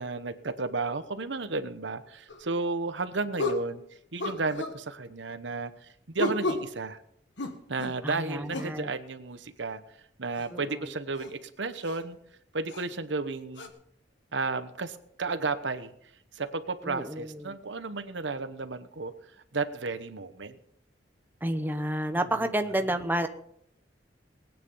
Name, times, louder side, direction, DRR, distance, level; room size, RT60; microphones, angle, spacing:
voice 1, 0.0-3.8 4.1-5.7 6.1-7.0 7.7-9.8 10.2-12.2 12.5-13.7 14.3-15.9 16.3-19.1 19.5-20.6, right 3 dB, 80° right, 11 dB, 1.1 m, -33 dB
sound 1, 2.3-2.4 3.4-3.7 4.2-4.8 6.2-6.7 7.4-8.0 8.5-8.8 10.4-10.5 11.2-11.3 11.8-12.0 12.7-12.8 13.6-13.7, left 2 dB, 80° left, 1.7 m, -32 dB
voice 2, 8.0-8.9 10.5-10.8 16.8-17.6 21.4-23.3, right 1 dB, 10° right, 7 dB, 0.9 m, -30 dB
19.5 x 9.3 x 5.5 m, 0.71 s
head